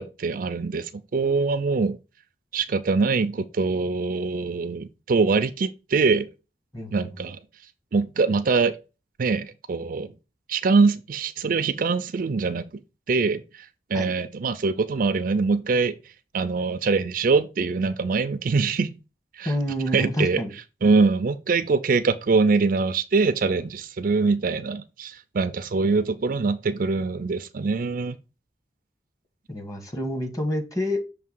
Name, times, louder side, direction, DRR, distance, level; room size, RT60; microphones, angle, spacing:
voice 1, 0.0-2.0 2.5-6.3 6.9-7.4 7.9-8.7 9.2-10.1 10.5-12.7 13.1-13.4 13.9-15.9 16.3-18.9 19.4-19.5 19.9-20.4 20.8-28.1, right 4 dB, 50° right, 0.4 m, -23 dB
voice 2, 6.7-7.1 13.9-14.1 19.4-20.5 29.5-31.0, equal, 20° left, 1.3 m, -28 dB
6.6 x 2.7 x 5.4 m
head